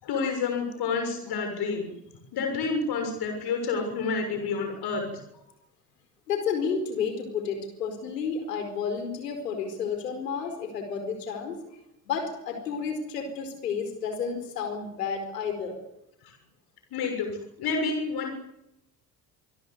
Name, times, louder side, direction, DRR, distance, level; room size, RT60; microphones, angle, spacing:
voice 1, 0.0-1.9 2.3-5.2 16.2-16.3 16.9-18.3, left 4 dB, 50° left, 5 dB, 6.7 m, -29 dB
voice 2, 6.3-11.8 12.0-15.8, left 6 dB, 75° left, 6 dB, 4.7 m, -31 dB
26.5 x 22.0 x 8.2 m, 0.85 s
figure-of-eight pair, 55°, 48 cm